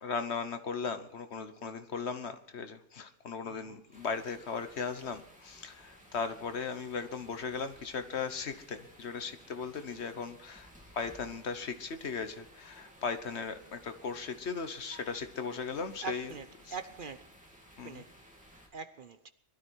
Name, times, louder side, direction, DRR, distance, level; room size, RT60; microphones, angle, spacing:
voice 1, 0.0-10.7 10.9-16.3 17.8-18.0, left 5 dB, 65° left, 1.4 m, -37 dB
voice 2, 3.4-3.8 10.8-11.0 16.0-17.2 17.8-18.1 18.7-19.3, right 6 dB, 50° right, 0.9 m, -43 dB
sound 1, 3.9-18.7, equal, 5° right, 3.1 m, -57 dB
21.0 x 12.5 x 4.6 m
omnidirectional pair, 1.2 m